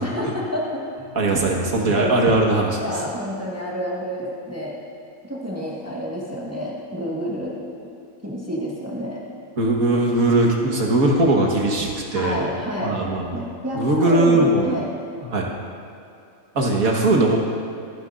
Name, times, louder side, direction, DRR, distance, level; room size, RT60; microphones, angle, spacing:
voice 1, 0.0-0.9 1.9-2.4 2.8-4.7 5.2-7.6 8.2-9.2 12.1-13.0 13.3-14.9, equal, 10° right, -5 dB, 1.6 m, -28 dB
voice 2, 1.1-2.8 9.6-12.5 12.8-13.4 13.7-14.7 15.3-15.5 16.6-17.4, right 2 dB, 75° right, -1 dB, 1.9 m, -19 dB
25.0 x 9.7 x 2.6 m, 2.6 s
omnidirectional pair, 1.5 m